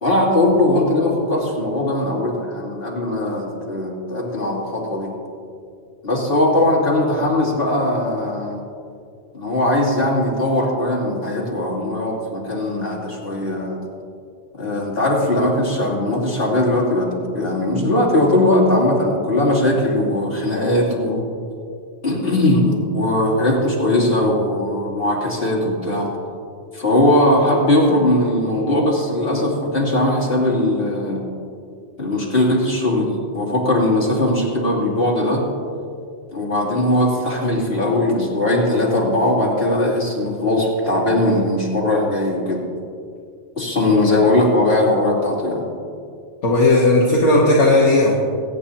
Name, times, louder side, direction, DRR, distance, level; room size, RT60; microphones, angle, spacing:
voice 1, 0.0-5.1 6.0-8.6 9.3-13.8 14.6-21.2 22.0-26.1 26.7-31.2 32.0-35.4 36.3-42.6 43.6-45.6, left 1 dB, 50° left, -5 dB, 2.9 m, -19 dB
voice 2, 46.4-48.2, left 2 dB, 70° left, -4 dB, 1.7 m, -14 dB
22.5 x 9.6 x 2.8 m, 2.3 s
omnidirectional pair, 1.2 m